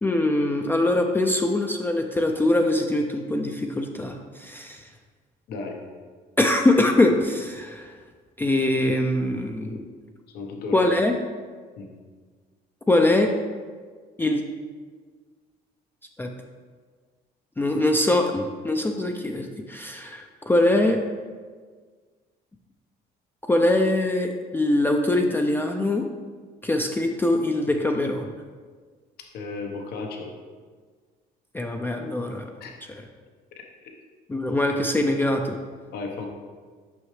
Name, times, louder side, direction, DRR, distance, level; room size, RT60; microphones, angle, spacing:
voice 1, 0.0-4.9 6.4-7.9 8.4-9.9 10.7-11.2 12.9-13.3 14.2-14.4 16.2-16.3 17.6-21.0 23.5-26.1 26.6-28.3 31.5-32.5 34.3-35.6, left 1 dB, 10° left, 3 dB, 0.4 m, -23 dB
voice 2, 10.3-10.9 11.8-11.9 29.3-30.3 32.6-32.7 35.9-36.3, left 4 dB, 70° left, 2 dB, 0.9 m, -33 dB
6.1 x 5.6 x 3.1 m, 1.5 s
cardioid pair, 110°, 17 cm